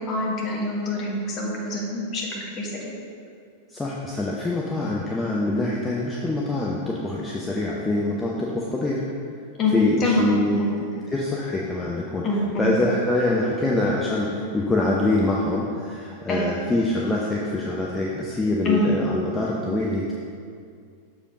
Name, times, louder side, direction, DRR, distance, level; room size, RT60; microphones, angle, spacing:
voice 1, 0.0-2.9 9.6-9.7 10.0-10.7 12.2-12.7 16.3-16.5 18.6-18.9, left 2 dB, 30° left, -3 dB, 1.7 m, -25 dB
voice 2, 3.7-9.0 9.7-10.6 11.1-12.3 12.6-20.1, left 2 dB, 10° left, -3 dB, 0.7 m, -24 dB
6.9 x 4.8 x 5.1 m, 2.3 s
figure-of-eight pair, 90°, 0 cm